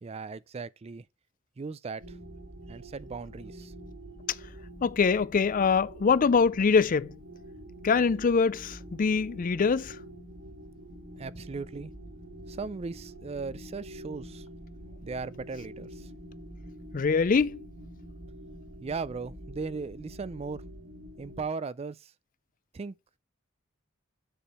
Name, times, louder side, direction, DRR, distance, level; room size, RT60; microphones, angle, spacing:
voice 1, 0.0-1.0 1.6-2.2 2.7-3.7 11.2-11.9 12.5-14.5 15.0-16.1 18.8-20.6 21.2-22.1 22.7-22.9, right 4 dB, 30° right, 0.4 m, -37 dB
sound 1, 2.0-21.5, equal, 70° right, 3.1 m, -46 dB
voice 2, 4.8-7.1 7.8-10.0 16.9-17.6, left 5 dB, 40° left, 0.4 m, -24 dB
7.4 x 6.8 x 4.3 m
head